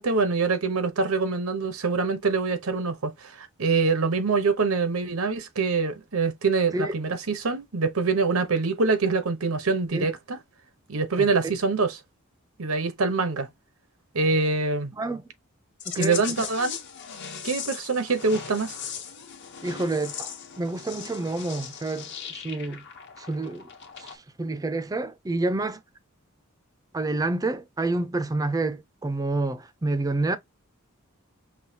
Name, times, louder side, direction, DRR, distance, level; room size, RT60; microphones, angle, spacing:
voice 1, 0.0-10.4 10.9-12.0 12.6-13.5 14.1-14.9 16.0-16.8 17.4-18.7, right 4 dB, 90° right, 0.9 m, -25 dB
sound 1, 15.8-24.2, left 8 dB, 55° left, 1.0 m, -38 dB
voice 2, 15.9-16.3 19.6-22.8 23.2-23.7 24.0-25.8 26.9-30.4, right 2 dB, 15° right, 0.4 m, -28 dB
5.5 x 2.3 x 2.7 m
head